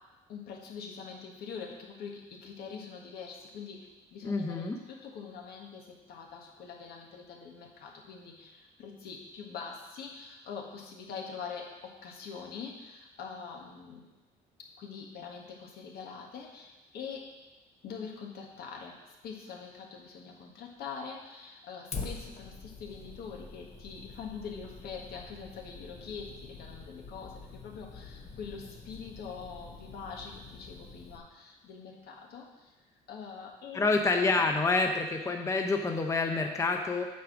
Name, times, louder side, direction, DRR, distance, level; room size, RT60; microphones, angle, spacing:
voice 1, 0.3-14.0 14.6-17.2 17.8-32.7 33.1-33.9 34.2-34.5, left 6 dB, 70° left, 0 dB, 1.6 m, -44 dB
voice 2, 4.2-4.8 33.7-37.1, left 3 dB, 15° left, 4 dB, 0.6 m, -28 dB
Fire, 21.9-31.2, left 4 dB, 40° left, 1.0 m, -46 dB
8.2 x 4.7 x 6.1 m, 1.1 s
cardioid pair, 110°, 17 cm